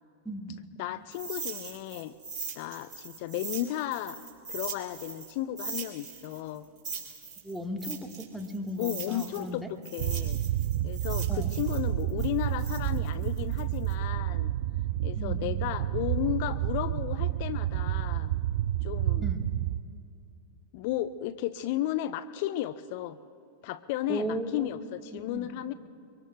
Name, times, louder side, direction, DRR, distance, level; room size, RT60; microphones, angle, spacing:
voice 1, 0.2-0.6 7.4-9.7 11.3-11.5 15.1-15.5 19.2-19.5 24.1-24.7 25.1-25.5, equal, 5° right, 4 dB, 1.4 m, -36 dB
voice 2, 0.8-2.1 2.6-4.2 4.5-6.6 8.8-10.4 10.8-14.5 15.0-18.3 18.8-19.3 20.7-23.2 23.6-25.7, left 13 dB, 55° left, 14 dB, 0.4 m, -34 dB
sound 1, 1.1-5.3 5.6-9.5 9.8-13.9, right 5 dB, 35° right, 3.8 m, -40 dB
sound 2, 10.0-19.8, right 12 dB, 60° right, 0.4 m, -30 dB
24.5 x 24.0 x 2.3 m, 2.5 s
hypercardioid pair, 100°, 0 cm